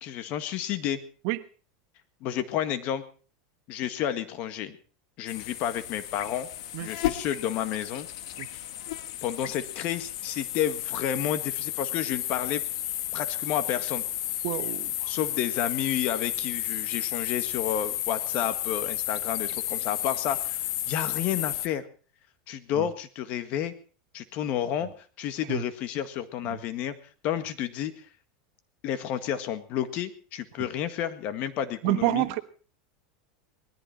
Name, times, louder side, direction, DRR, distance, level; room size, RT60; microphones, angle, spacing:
voice 1, 0.0-1.0 2.2-3.0 3.7-4.8 5.2-6.5 6.8-8.1 8.5-8.7 9.2-12.6 13.1-14.0 15.1-21.9 22.5-23.7 24.1-24.9 25.2-26.9 27.2-28.0 28.8-32.3, left 10 dB, 50° left, 11 dB, 1.8 m, -31 dB
sound 1, 5.3-21.7, left 13 dB, 70° left, 1.4 m, -32 dB
voice 2, 14.4-15.1 22.8-22.9 25.5-25.6 31.8-32.4, right 19 dB, 60° right, 12 dB, 1.2 m, -28 dB
19.5 x 14.5 x 4.4 m, 0.39 s
supercardioid pair, 135°, 3 cm